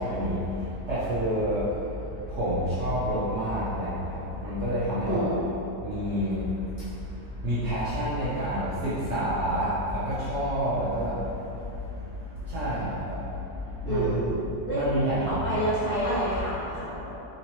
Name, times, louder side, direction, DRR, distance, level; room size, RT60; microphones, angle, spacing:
voice 1, 0.0-5.3 5.8-14.3 14.7-16.0, equal, 55° right, -12 dB, 0.9 m, -29 dB
voice 2, 5.0-5.7 13.8-14.4 14.7-14.8 15.3-17.1, right 1 dB, 40° left, -13 dB, 1.0 m, -28 dB
3.9 x 2.8 x 3.0 m, 2.9 s
omnidirectional pair, 1.8 m